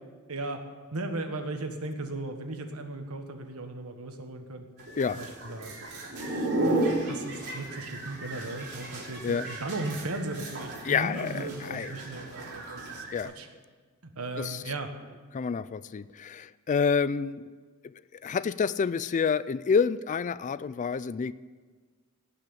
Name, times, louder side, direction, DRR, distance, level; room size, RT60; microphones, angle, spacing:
voice 1, 0.3-0.6 0.9-4.6 5.1-5.7 6.3-13.5 14.1-14.9, right 2 dB, 85° right, 6 dB, 1.5 m, -37 dB
sound 1, 4.8-13.2, right 2 dB, 50° right, 3.5 m, -34 dB
voice 2, 10.8-11.9 13.1-13.3 14.4-14.6 15.3-17.5 18.2-21.3, left 6 dB, 35° left, 17 dB, 0.3 m, -28 dB
17.5 x 6.0 x 8.7 m, 1.5 s
head